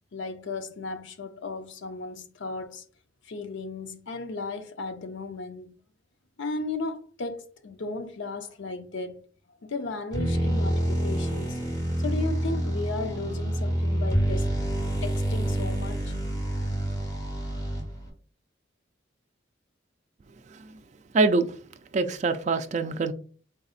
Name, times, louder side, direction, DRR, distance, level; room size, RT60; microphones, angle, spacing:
voice 1, 0.1-2.8 3.2-5.7 6.4-9.2 9.6-11.6 12.0-14.5 15.0-16.1, left 3 dB, 75° left, 0.6 m, -35 dB
sound 1, 10.1-18.1, right 1 dB, 20° left, 1.1 m, -27 dB
voice 2, 21.1-21.5 21.9-23.1, right 3 dB, 40° right, 0.3 m, -24 dB
4.0 x 3.9 x 2.4 m
head